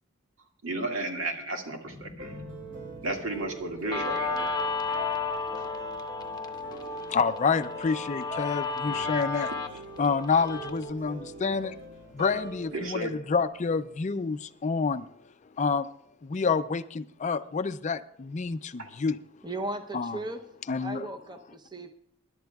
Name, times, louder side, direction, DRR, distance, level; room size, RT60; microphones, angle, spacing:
voice 1, 0.6-2.3 3.0-4.6 5.6-5.7 12.7-13.1 18.8-18.9, right 2 dB, 85° right, 1.9 m, -33 dB
sound 1, 1.8-8.4, left 2 dB, 40° right, 2.2 m, -51 dB
sound 2, 2.2-14.3, right 3 dB, 60° right, 3.5 m, -45 dB
Guitar, 3.9-10.9, left 4 dB, 20° left, 0.9 m, -33 dB
voice 2, 6.7-9.5 10.0-11.8 12.1-15.1 15.6-15.9 16.2-19.2 19.9-20.2 20.7-21.1, left 5 dB, 35° left, 0.4 m, -28 dB
voice 3, 19.4-20.4 20.8-21.9, right 2 dB, 20° right, 0.7 m, -36 dB
25.0 x 11.5 x 2.3 m
head